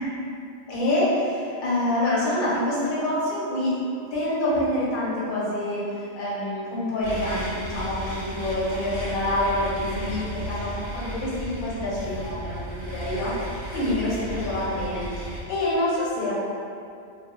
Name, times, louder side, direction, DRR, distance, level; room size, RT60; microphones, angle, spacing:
voice 1, 0.7-3.8 4.1-16.3, left 1 dB, 50° left, -7 dB, 0.8 m, -26 dB
sound 1, 7.0-15.4, right 1 dB, 20° left, 0.8 m, -34 dB
2.3 x 2.1 x 2.9 m, 2.5 s
omnidirectional pair, 1.2 m